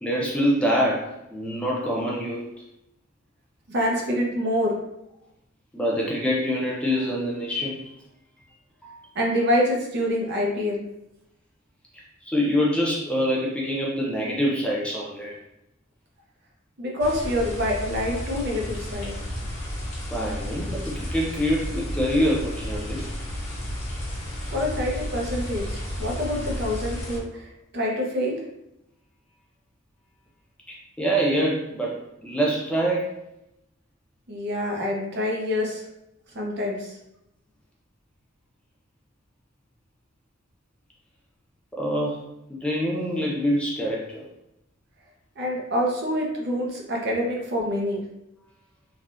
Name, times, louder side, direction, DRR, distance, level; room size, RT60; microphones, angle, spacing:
voice 1, 0.0-2.5 5.7-7.9 8.8-9.0 12.2-15.4 20.1-23.1 24.5-24.7 30.7-33.1 41.7-42.2 42.5-44.2, equal, 5° left, -4 dB, 0.4 m, -25 dB
voice 2, 3.7-4.8 9.1-10.8 16.8-19.2 24.5-27.5 27.7-28.4 34.3-35.8 36.3-36.9 45.4-48.0, left 1 dB, 55° right, -1 dB, 0.7 m, -26 dB
sound 1, 17.0-27.2, equal, 35° left, 1.2 m, -32 dB
3.3 x 2.3 x 2.6 m, 0.85 s
head